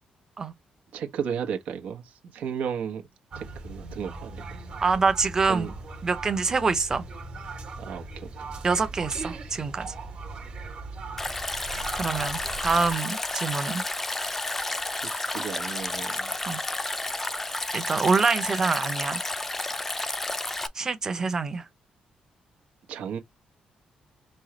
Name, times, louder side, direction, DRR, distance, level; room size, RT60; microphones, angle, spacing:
voice 1, 0.9-3.1 3.3-4.6 5.5-5.7 7.8-8.3 15.0-16.3 17.2-17.4 22.9-23.2, right 7 dB, 80° right, 1.2 m, -34 dB
sound 1, 3.3-13.0, right 3 dB, 45° right, 1.3 m, -39 dB
voice 2, 4.8-5.7 6.0-7.0 8.6-9.9 11.9-13.8 16.5-16.6 17.7-19.2 20.7-21.6, right 4 dB, 25° right, 0.8 m, -25 dB
Stream, 11.2-20.7, left 2 dB, 10° left, 0.4 m, -31 dB
5.4 x 2.4 x 3.1 m
cardioid pair, 170°, 2 cm